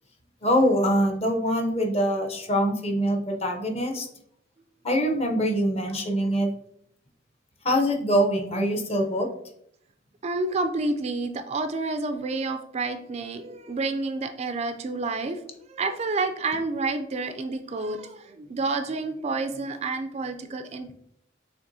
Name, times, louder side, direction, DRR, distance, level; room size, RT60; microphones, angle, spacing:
voice 1, 0.4-4.1 4.8-6.5 7.6-9.3, equal, 30° left, 3 dB, 0.7 m, -24 dB
voice 2, 10.2-15.4 15.7-20.9, right 3 dB, 35° right, 8 dB, 0.3 m, -29 dB
6.7 x 3.0 x 2.6 m, 0.71 s
head